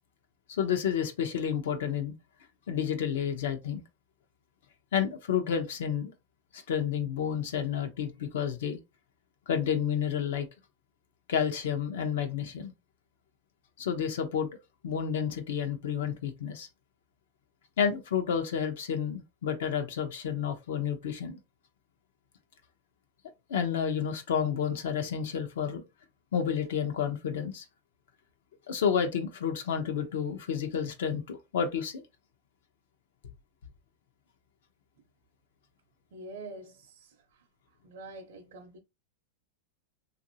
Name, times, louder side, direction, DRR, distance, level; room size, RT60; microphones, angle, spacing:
voice 1, 0.5-2.1 2.7-3.8 4.9-6.1 6.5-8.8 9.5-10.5 11.3-12.7 13.8-14.5 14.8-16.7 17.8-21.4 23.5-25.8 26.3-27.6 28.7-32.0, left 7 dB, 75° left, 0.6 m, -30 dB
voice 2, 36.1-37.5 37.8-38.8, right 2 dB, 65° right, 0.6 m, -46 dB
3.0 x 2.5 x 2.7 m
supercardioid pair, 160°, 0 cm